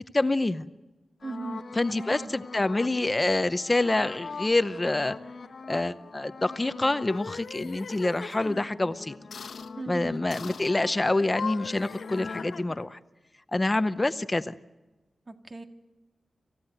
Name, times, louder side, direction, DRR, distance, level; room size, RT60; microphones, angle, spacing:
voice 1, 0.1-0.6 1.8-5.1 5.7-9.1 9.9-13.0 13.5-14.5, left 2 dB, 25° left, 12 dB, 0.7 m, -26 dB
sound 1, 1.2-7.3 7.8-12.6, left 4 dB, 60° left, 1.3 m, -43 dB
voice 2, 1.2-1.6 2.0-2.3 9.8-10.2 15.3-15.6, right 3 dB, 35° right, 5 dB, 1.9 m, -37 dB
sound 2, 7.0-8.7 9.3-9.7 10.3-10.7 11.2-12.9, left 5 dB, 85° left, 1.1 m, -40 dB
27.0 x 15.5 x 7.9 m, 1.1 s
wide cardioid pair, 105°, 0 cm